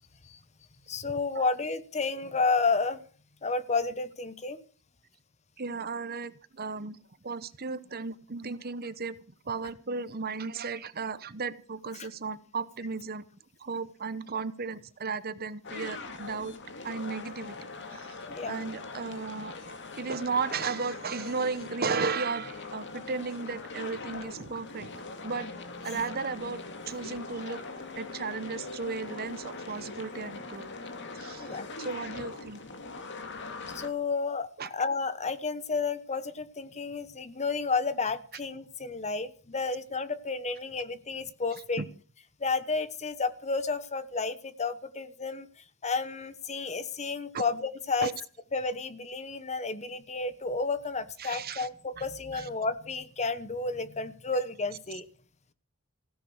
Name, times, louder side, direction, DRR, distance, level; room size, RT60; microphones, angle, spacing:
voice 1, 0.9-3.0 3.4-4.6 12.0-12.1 18.3-18.6 31.4-31.7 33.7-41.8 42.4-45.5 45.8-48.1 48.5-55.0, left 4 dB, 30° left, 13 dB, 1.1 m, -31 dB
voice 2, 5.6-7.0 7.2-9.2 9.4-13.2 13.6-16.6 16.8-17.6 17.9-18.1 18.4-24.9 25.2-25.5 25.8-27.6 28.0-30.7 31.1-32.6 34.6-34.7 41.8-41.9 47.3-47.4 48.0-48.1 51.2-51.7 52.0-52.1 52.3-52.5, right 4 dB, 45° right, 14 dB, 1.0 m, -35 dB
sound 1, 15.6-33.9, left 3 dB, 55° left, 2.2 m, -41 dB
16.5 x 11.0 x 6.3 m, 0.40 s
head